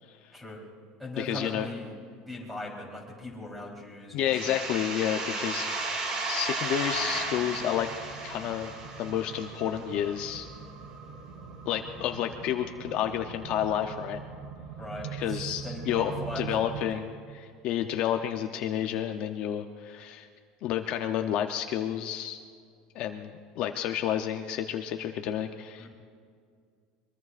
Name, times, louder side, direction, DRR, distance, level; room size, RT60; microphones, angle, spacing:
voice 1, 0.3-0.7 1.0-1.9 2.3-4.6 5.2-5.4 14.8-16.9 25.8-25.9, left 1 dB, 5° right, -2 dB, 3.6 m, -40 dB
voice 2, 1.2-1.7 4.1-7.9 8.2-8.7 9.0-10.5 11.7-14.2 15.1-17.1 17.3-20.3 20.6-22.4 22.9-25.9, left 10 dB, 45° left, 6 dB, 0.7 m, -30 dB
sound 1, 4.3-9.8, right 3 dB, 35° right, 2.1 m, -34 dB
sound 2, 6.8-16.8, right 7 dB, 70° right, 3.3 m, -43 dB
23.5 x 22.5 x 2.5 m, 2.2 s
cardioid pair, 165°, 2 cm